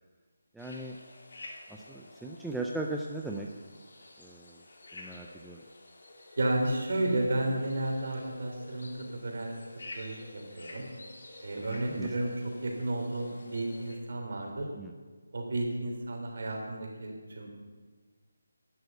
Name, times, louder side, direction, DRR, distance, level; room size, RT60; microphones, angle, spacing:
voice 1, 0.5-1.0 1.7-3.5 4.2-4.6 4.9-5.6 11.5-12.1 14.8-14.9, right 2 dB, ahead, -1 dB, 0.3 m, -38 dB
sound 1, 0.6-14.0, left 2 dB, 45° left, 2.7 m, -50 dB
voice 2, 6.4-10.9 11.4-14.7 15.3-17.5, right 1 dB, 45° right, 1 dB, 3.4 m, -32 dB
11.5 x 11.0 x 8.0 m, 1.5 s
figure-of-eight pair, 180°, 0 cm